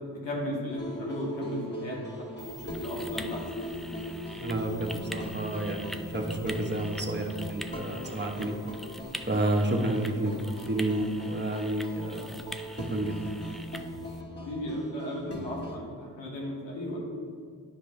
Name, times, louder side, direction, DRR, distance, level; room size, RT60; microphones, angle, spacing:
voice 1, 0.2-2.0 2.4-2.5 2.8-4.1 14.4-17.0, left 1 dB, 85° left, -3 dB, 1.7 m, -35 dB
sound 1, 0.7-15.7, equal, 25° left, 1.9 m, -40 dB
sound 2, 2.4-14.2, equal, ahead, 0.5 m, -45 dB
voice 2, 4.4-8.6 9.3-10.4 10.7-12.4 12.9-13.2, right 1 dB, 25° right, 2 dB, 1.3 m, -30 dB
11.0 x 5.1 x 3.4 m, 2.2 s
supercardioid pair, 40°, 44 cm